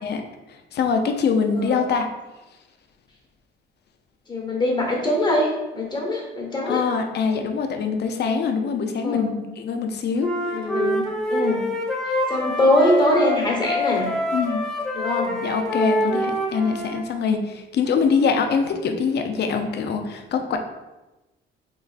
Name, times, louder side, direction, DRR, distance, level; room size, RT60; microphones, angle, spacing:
voice 1, 0.5-2.1 6.7-10.3 14.3-14.6 15.4-20.6, left 5 dB, 55° left, 5 dB, 0.5 m, -23 dB
voice 2, 4.3-6.8 9.0-9.3 10.5-11.0 11.3-11.6 12.3-14.1 14.9-15.4, left 1 dB, 20° left, -2 dB, 1.1 m, -22 dB
Wind instrument woodwind instrument, 10.2-17.0, equal, 5° left, 0.9 m, -26 dB
3.8 x 3.1 x 2.5 m, 1.1 s
cardioid pair, 90°, 20 cm